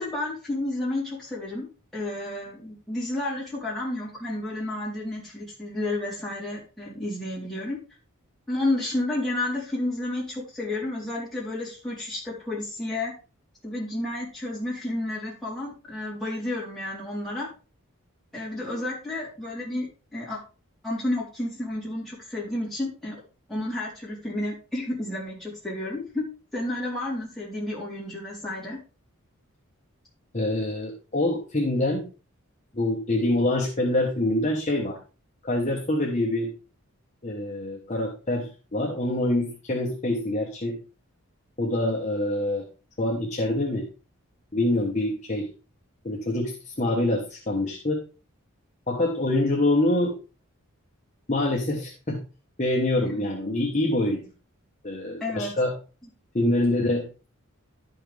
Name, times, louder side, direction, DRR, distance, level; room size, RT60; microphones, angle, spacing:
voice 1, 0.0-7.8 8.5-13.1 13.6-17.5 18.3-19.9 20.1-20.4 20.8-23.2 23.5-26.2 26.5-28.8 53.0-53.3 55.2-55.5, left 1 dB, ahead, -7 dB, 3.7 m, -31 dB
voice 2, 30.3-32.1 32.7-35.0 35.4-36.5 37.2-38.5 38.7-40.8 41.6-42.6 43.0-43.9 44.5-45.5 46.0-48.0 48.9-50.1 51.3-52.2 52.6-54.2 54.8-55.7 56.3-57.3, left 1 dB, 30° left, -2 dB, 1.3 m, -25 dB
11.5 x 5.9 x 3.5 m, 0.34 s
head